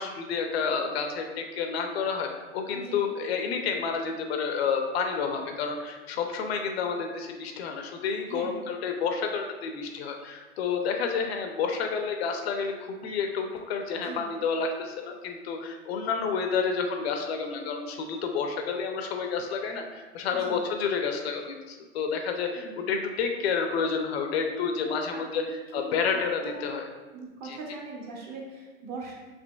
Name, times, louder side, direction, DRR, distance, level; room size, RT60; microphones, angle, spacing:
voice 1, 0.0-25.4 25.7-26.9 27.4-27.6, left 5 dB, 50° left, 4 dB, 0.5 m, -30 dB
voice 2, 8.3-8.6 14.0-14.2 20.3-20.6 22.5-22.8 24.7-25.9 26.4-26.8 27.1-29.2, right 3 dB, 25° right, -2 dB, 0.6 m, -41 dB
5.0 x 2.7 x 2.3 m, 1.3 s
hypercardioid pair, 125°, 41 cm